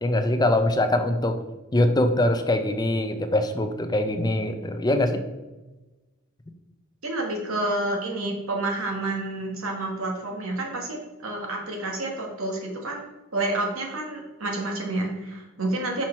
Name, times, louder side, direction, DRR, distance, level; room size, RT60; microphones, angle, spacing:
voice 1, 0.0-1.4 1.7-5.2, left 1 dB, 20° left, 7 dB, 0.5 m, -23 dB
voice 2, 7.0-16.0, right 2 dB, 70° right, 0 dB, 1.6 m, -29 dB
5.9 x 4.4 x 4.5 m, 1.1 s
head